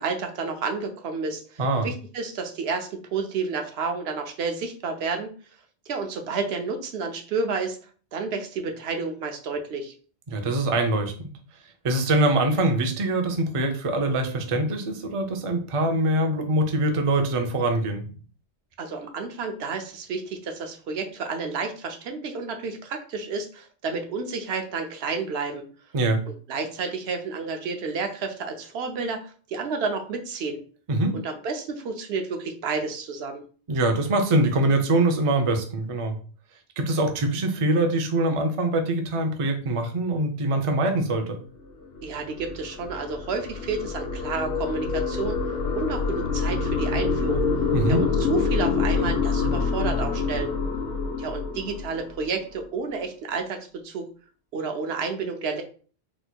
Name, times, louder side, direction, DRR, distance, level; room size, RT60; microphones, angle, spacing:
voice 1, 0.0-5.3 5.9-7.8 8.1-9.9 18.8-25.6 26.5-30.6 31.2-33.4 42.0-45.4 45.7-47.5 47.9-50.5 51.2-53.6 53.8-54.0 54.5-55.6, right 4 dB, 75° right, 5 dB, 0.9 m, -30 dB
voice 2, 10.3-11.3 11.8-18.1 25.9-26.2 30.9-31.2 33.7-36.2 36.8-41.4 47.7-48.0, right 2 dB, 45° right, 4 dB, 0.5 m, -23 dB
sound 1, 41.7-52.3, left 4 dB, 85° left, 1.3 m, -26 dB
4.2 x 2.8 x 2.2 m, 0.41 s
omnidirectional pair, 1.1 m